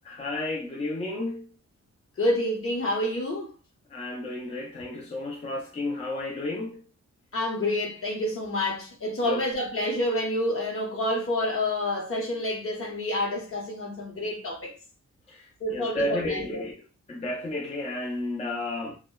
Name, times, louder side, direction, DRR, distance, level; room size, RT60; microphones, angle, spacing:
voice 1, 0.1-1.5 3.9-6.8 9.3-9.4 15.3-16.7 17.1-19.0, left 2 dB, 25° left, 0.4 m, -32 dB
voice 2, 2.2-3.5 7.3-14.8 15.6-16.6, left 1 dB, 45° left, 0.9 m, -28 dB
2.6 x 2.2 x 2.2 m
wide cardioid pair, 120°, 30 cm